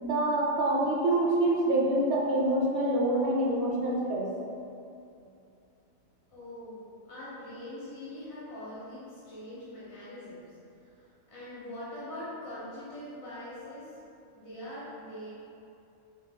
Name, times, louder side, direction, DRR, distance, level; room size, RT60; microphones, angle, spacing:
voice 1, 0.0-4.3, right 1 dB, 65° right, -3 dB, 0.8 m, -26 dB
voice 2, 6.3-10.6 11.0-13.9 14.3-15.3, left 1 dB, 60° left, -10 dB, 1.2 m, -43 dB
4.5 x 4.2 x 2.2 m, 2.6 s
omnidirectional pair, 1.4 m